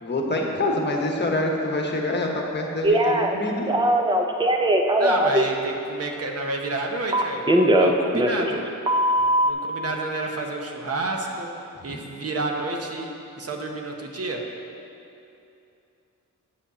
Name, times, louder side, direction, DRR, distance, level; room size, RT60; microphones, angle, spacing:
voice 1, 0.0-3.7 11.9-12.0, left 2 dB, 35° left, 0 dB, 1.1 m, -26 dB
Telephone, 2.8-3.3 3.7-5.4 7.1-8.6 8.9-9.5, right 1 dB, 15° right, 0.4 m, -20 dB
voice 2, 5.0-8.6 9.4-11.5 11.8-14.5, right 2 dB, 45° right, 2 dB, 0.9 m, -30 dB
8.5 x 5.1 x 6.8 m, 2.7 s
wide cardioid pair, 165°, 32 cm